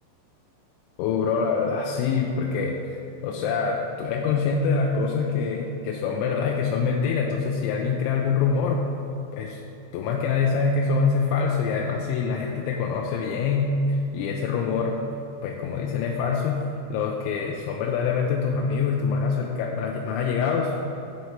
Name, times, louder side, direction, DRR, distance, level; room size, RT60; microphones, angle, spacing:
voice 1, 1.0-8.9 9.3-9.6 9.9-15.1 15.4-21.0, left 5 dB, 85° left, 0 dB, 3.0 m, -25 dB
10.5 x 4.4 x 7.1 m, 3.0 s
omnidirectional pair, 5.4 m